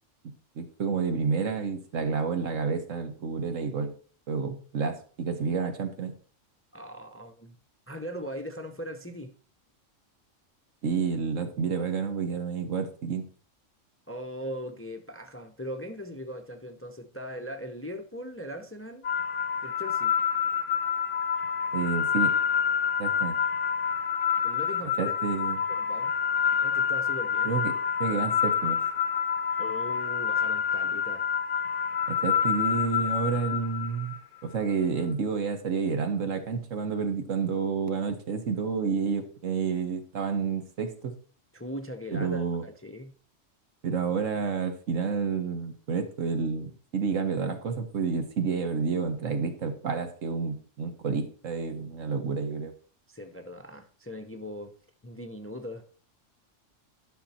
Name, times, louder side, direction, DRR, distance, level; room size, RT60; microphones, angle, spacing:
voice 1, 0.2-3.9 4.3-6.1 10.8-13.3 21.7-22.4 23.0-23.4 25.0-25.6 27.4-27.7 28.0-28.8 32.1-34.1 34.4-41.1 42.1-42.6 43.8-52.7, right 5 dB, 80° right, 1.6 m, -29 dB
voice 2, 6.7-7.6 7.9-9.3 14.1-19.1 19.6-20.1 24.4-25.1 25.7-26.1 26.6-27.6 28.1-28.2 29.6-31.3 41.5-43.1 53.1-54.7 55.0-55.8, equal, 15° left, 0.6 m, -39 dB
sound 1, 19.0-34.2, left 7 dB, 70° left, 1.0 m, -27 dB
12.0 x 5.8 x 4.3 m
omnidirectional pair, 1.3 m